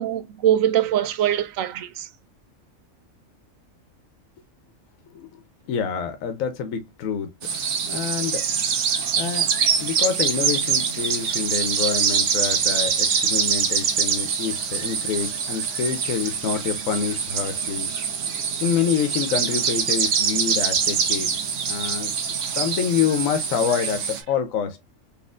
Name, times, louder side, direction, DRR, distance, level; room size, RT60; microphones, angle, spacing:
voice 1, 0.0-2.1, right 11 dB, 85° right, 1.0 m, -22 dB
voice 2, 5.7-7.3 7.9-8.4 8.9-9.5 9.8-17.9 18.6-21.4 21.7-22.1 22.5-24.8, left 7 dB, 85° left, 1.1 m, -27 dB
sound 1, 7.4-24.2, right 6 dB, 70° right, 1.1 m, -24 dB
4.2 x 3.0 x 2.3 m
omnidirectional pair, 1.4 m